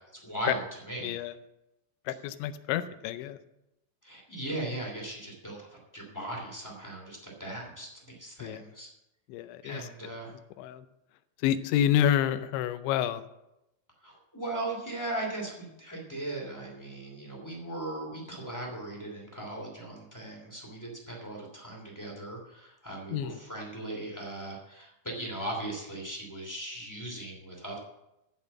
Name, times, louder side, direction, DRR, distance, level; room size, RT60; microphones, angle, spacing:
voice 1, 0.0-1.2 4.0-5.7 5.9-8.9 9.6-10.3 14.0-27.8, right 1 dB, 10° left, -1 dB, 1.3 m, -38 dB
voice 2, 1.0-1.3 2.1-3.4 8.4-8.6 9.3-9.9 10.6-10.9 11.4-13.2 23.1-23.4, left 10 dB, 85° left, 12 dB, 3.0 m, -28 dB
14.5 x 5.5 x 7.2 m, 0.89 s
omnidirectional pair, 5.3 m